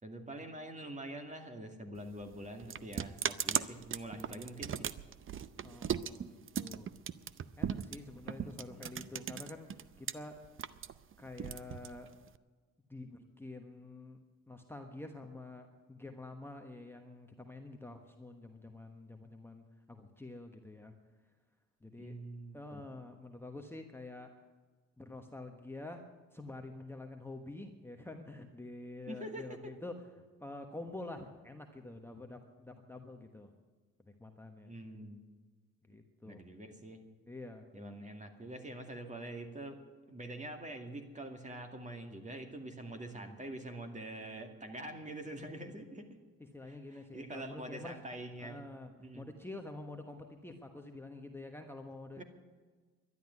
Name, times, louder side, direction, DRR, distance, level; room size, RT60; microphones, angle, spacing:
voice 1, 0.0-4.9 8.2-9.1 22.0-22.8 29.1-29.7 34.6-35.2 36.2-37.0 37.7-39.8 40.1-46.2 46.6-48.7 49.0-49.2 52.2-52.3, right 1 dB, 25° right, 5 dB, 2.3 m, -45 dB
sound 1, 1.9-10.1 10.4-12.4, right 8 dB, 45° right, 0.6 m, -38 dB
voice 2, 5.6-6.9 7.6-9.7 10.0-10.4 11.2-12.1 12.9-14.2 14.5-20.9 21.8-22.1 22.5-24.3 25.0-26.0 26.3-29.9 30.4-33.5 34.0-34.7 35.8-36.4 37.3-37.6 46.5-48.0 48.4-52.2, left 2 dB, 10° left, 4 dB, 1.2 m, -47 dB
12.0 x 11.0 x 9.6 m, 1.4 s
cardioid pair, 90°, 30 cm